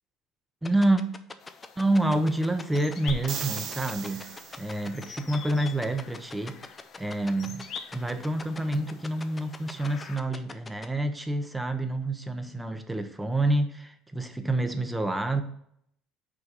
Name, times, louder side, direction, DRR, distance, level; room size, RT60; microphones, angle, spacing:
sound 1, 0.6-10.9, left 3 dB, 20° left, 0.7 m, -41 dB
voice 1, 0.6-1.0 1.8-4.2 4.6-6.6 7.0-7.6 7.9-15.4, right 1 dB, 10° right, 8 dB, 1.0 m, -28 dB
sound 2, 1.4-10.2, left 6 dB, 50° left, 0.8 m, -46 dB
sound 3, 3.1-4.9 8.7-8.8, right 7 dB, 55° right, 1.0 m, -37 dB
6.1 x 4.7 x 5.2 m, 0.69 s
supercardioid pair, 80°, 0 cm